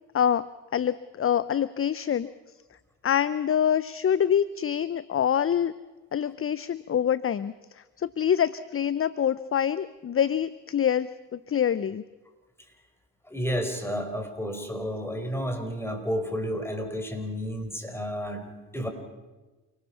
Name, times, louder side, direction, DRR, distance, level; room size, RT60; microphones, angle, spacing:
voice 1, 0.1-0.5 0.7-2.3 3.0-5.7 6.1-7.5 8.0-12.0, left 9 dB, 30° left, 17 dB, 0.6 m, -25 dB
voice 2, 13.2-18.9, equal, 5° left, 5 dB, 4.8 m, -31 dB
28.5 x 19.0 x 5.8 m, 1.2 s
hypercardioid pair, 50°, 45 cm